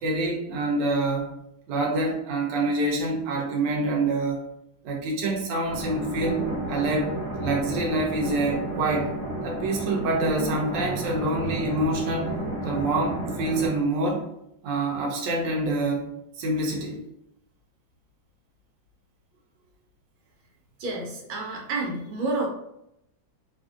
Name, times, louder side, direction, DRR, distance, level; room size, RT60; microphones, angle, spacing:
voice 1, 0.0-1.3 1.7-4.4 4.8-6.4 6.7-7.1 7.4-9.1 9.4-12.3 12.6-14.2 14.6-16.1 16.4-17.0, right 2 dB, 70° right, -2 dB, 1.3 m, -26 dB
sound 1, 5.7-13.7, right 2 dB, 50° right, 1.0 m, -32 dB
voice 2, 20.8-22.5, right 2 dB, 85° right, -1 dB, 1.5 m, -29 dB
3.2 x 2.5 x 2.4 m, 0.80 s
omnidirectional pair, 2.1 m